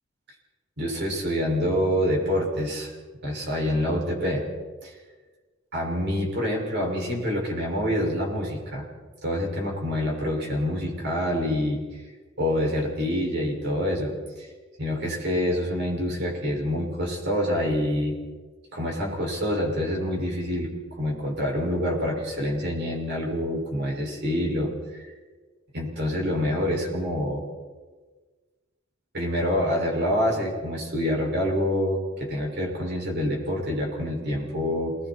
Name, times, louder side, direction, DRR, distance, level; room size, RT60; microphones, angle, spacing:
voice 1, 0.8-2.9 3.2-4.5 4.8-4.9 5.7-8.8 9.2-11.8 12.4-14.5 14.8-18.2 18.7-20.7 21.0-25.1 25.7-27.4 29.1-35.0, equal, 55° right, -1 dB, 6.4 m, -26 dB
28.0 x 20.5 x 4.6 m, 1.4 s
head